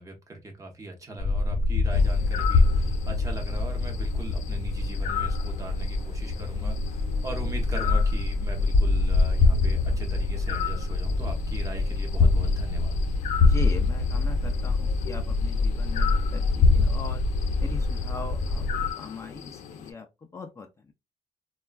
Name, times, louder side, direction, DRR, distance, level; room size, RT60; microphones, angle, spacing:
voice 1, 0.0-13.0, right 2 dB, 25° right, 0.7 m, -40 dB
sound 1, 1.2-18.9, left 3 dB, 55° left, 0.8 m, -24 dB
sound 2, 1.9-19.9, left 10 dB, 85° left, 0.5 m, -39 dB
sound 3, 2.2-2.5 3.2-3.3 3.6-3.7 5.0-5.1 5.8-8.1 8.5-8.6 9.5-9.6 9.9-10.3 10.9-11.1 12.3-13.2 14.1-14.4, equal, 65° right, 0.7 m, -49 dB
voice 2, 13.4-17.2 17.6-20.9, left 3 dB, 25° left, 0.4 m, -40 dB
3.5 x 2.2 x 2.2 m
cardioid pair, 130°, 12 cm